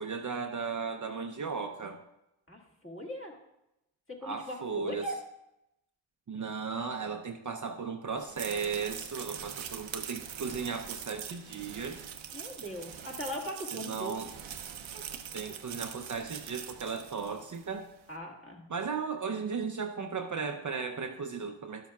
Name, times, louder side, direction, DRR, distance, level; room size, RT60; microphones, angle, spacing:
voice 1, 0.0-2.0 4.2-5.1 6.3-12.1 13.7-14.3 15.3-17.9 18.7-21.9, right 5 dB, 40° right, 5 dB, 0.6 m, -36 dB
voice 2, 2.5-3.4 4.1-5.2 12.3-14.2 14.9-15.1 18.1-18.6, equal, 25° left, -1 dB, 1.9 m, -40 dB
sound 1, 8.2-17.7, right 8 dB, 80° right, 0.7 m, -43 dB
12.0 x 7.0 x 2.3 m, 0.87 s
cardioid pair, 55°, 47 cm